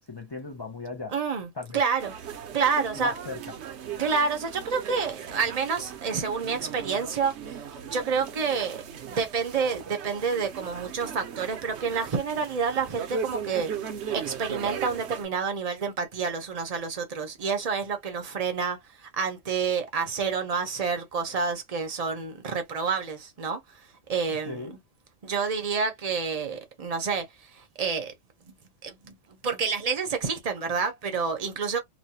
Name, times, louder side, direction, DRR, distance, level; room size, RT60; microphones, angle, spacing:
voice 1, 0.1-1.1 1.5-1.8 2.9-3.4 24.3-24.8, left 3 dB, 35° left, 0.4 m, -37 dB
voice 2, 1.1-2.1 2.5-3.1 4.0-7.6 7.9-13.7 14.1-23.6 24.1-24.7 25.2-27.3 27.6-28.1 28.4-28.5 28.8-29.2 29.4-31.8, right 5 dB, 40° right, 0.6 m, -28 dB
sound 1, 2.0-15.3, right 7 dB, 65° right, 0.9 m, -38 dB
3.1 x 2.1 x 2.7 m
omnidirectional pair, 1.4 m